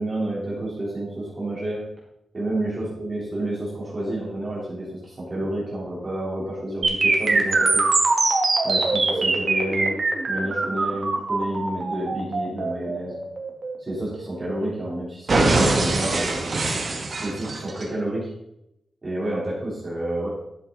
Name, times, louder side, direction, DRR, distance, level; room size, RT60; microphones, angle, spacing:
voice 1, 0.0-1.8 2.3-7.8 8.6-10.0 10.3-13.2 13.8-16.6 17.2-18.3 19.0-20.3, right 1 dB, 30° right, -7 dB, 3.8 m, -29 dB
sound 1, 6.8-14.8 15.3-17.8, right 3 dB, 45° right, 1.9 m, -23 dB
11.5 x 7.3 x 4.1 m, 0.83 s
wide cardioid pair, 120°, 0 cm